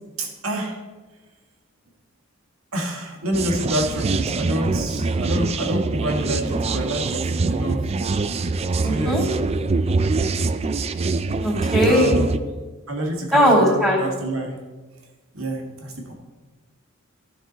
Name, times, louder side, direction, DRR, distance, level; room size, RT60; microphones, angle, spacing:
voice 1, 0.2-0.8 2.7-7.2 7.5-7.8 8.8-9.2 11.9-12.4 12.9-14.5 15.3-16.1, right 1 dB, 75° right, 1 dB, 1.9 m, -27 dB
sound 1, 3.3-12.4, right 3 dB, 30° right, 0.3 m, -24 dB
voice 2, 8.8-9.2 11.4-12.2 13.3-14.0, equal, ahead, -6 dB, 2.8 m, -18 dB
14.5 x 6.0 x 4.0 m, 1.3 s
head